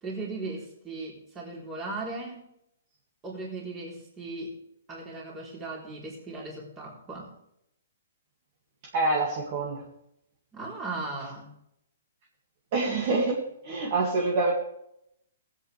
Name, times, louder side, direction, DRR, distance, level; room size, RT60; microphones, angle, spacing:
voice 1, 0.0-2.4 3.2-4.6 4.9-7.3 10.5-11.5, right 3 dB, 15° right, -3 dB, 3.7 m, -37 dB
voice 2, 8.9-9.8 12.7-13.4 13.6-14.5, right 3 dB, 35° right, -3 dB, 2.2 m, -26 dB
20.0 x 8.3 x 3.3 m, 0.77 s
hypercardioid pair, 170°, 0 cm